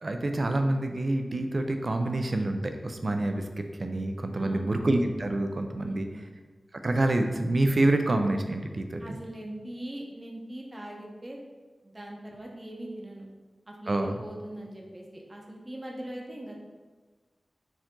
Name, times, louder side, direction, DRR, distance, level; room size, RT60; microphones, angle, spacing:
voice 1, 0.0-6.1 6.8-9.2 13.9-14.2, right 2 dB, 50° right, 6 dB, 0.4 m, -27 dB
voice 2, 4.3-4.7 5.9-6.1 9.0-11.4 11.8-13.3 13.7-16.7, right 1 dB, 30° right, -1 dB, 0.8 m, -41 dB
4.8 x 2.6 x 3.7 m, 1.4 s
cardioid pair, 50°, 0 cm